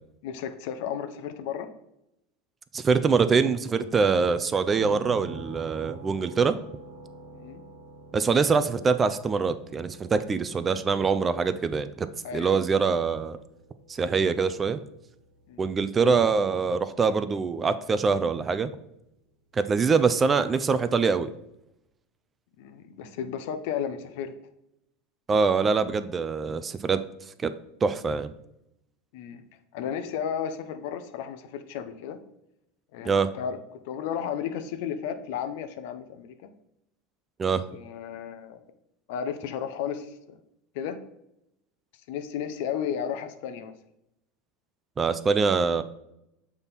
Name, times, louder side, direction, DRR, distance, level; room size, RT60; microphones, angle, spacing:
voice 1, 0.2-1.7 7.3-7.6 12.2-12.6 15.5-15.6 22.6-24.3 29.1-29.4 29.7-32.2 32.9-33.6 33.9-36.5 37.7-38.6 39.1-40.3 40.7-41.0 42.1-43.7, left 8 dB, 70° left, 9 dB, 0.7 m, -33 dB
voice 2, 2.7-6.6 8.1-12.1 12.3-13.4 13.9-14.8 15.6-18.7 19.5-21.3 25.3-27.0 27.4-27.5 27.8-28.3 33.1-33.3 37.4-37.6 45.0-45.8, right 5 dB, 25° right, 12 dB, 0.4 m, -24 dB
sound 1, 4.7-18.5, right 3 dB, 85° right, 0.7 m, -47 dB
6.8 x 3.6 x 4.1 m, 0.82 s
hypercardioid pair, 95°, 0 cm